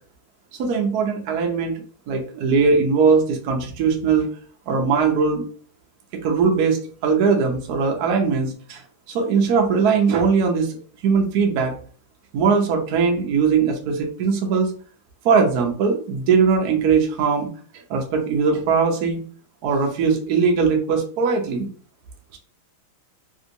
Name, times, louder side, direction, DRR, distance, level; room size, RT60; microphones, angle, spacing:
voice 1, 0.6-1.7 2.1-4.3 4.7-5.4 6.1-8.8 9.1-10.7 11.0-11.7 12.3-14.7 15.2-17.5 17.9-19.2 19.6-21.7, right 5 dB, 70° right, 2 dB, 0.9 m, -20 dB
3.4 x 2.8 x 2.6 m, 0.43 s
omnidirectional pair, 2.4 m